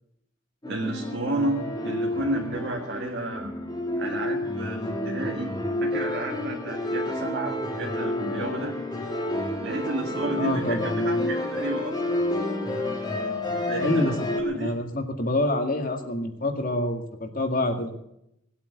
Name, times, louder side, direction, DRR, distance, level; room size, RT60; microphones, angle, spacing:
sound 1, 0.6-14.4, left 1 dB, 20° left, 2.2 m, -29 dB
voice 1, 0.7-3.5 4.0-5.5 5.8-8.7 9.6-12.0 13.7-14.8, right 1 dB, 55° right, 0 dB, 1.8 m, -31 dB
voice 2, 10.4-11.2 13.8-14.2 14.5-17.9, left 1 dB, 45° left, 5 dB, 2.1 m, -27 dB
19.5 x 8.7 x 8.2 m, 0.79 s
head